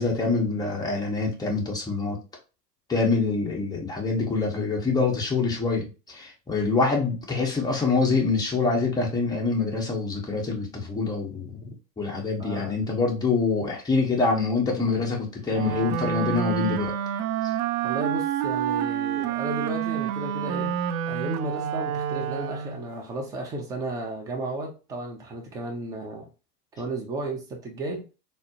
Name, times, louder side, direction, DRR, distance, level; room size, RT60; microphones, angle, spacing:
voice 1, 0.0-2.2 2.9-11.6 12.0-16.9, left 4 dB, 10° left, -1 dB, 0.8 m, -25 dB
voice 2, 12.4-12.8 17.8-20.8 21.1-26.3 26.7-28.0, right 2 dB, 10° right, 0 dB, 0.3 m, -33 dB
Wind instrument woodwind instrument, 15.5-22.9, right 10 dB, 65° right, 0.5 m, -28 dB
4.1 x 2.0 x 2.7 m, 0.32 s
hypercardioid pair, 110°, 48 cm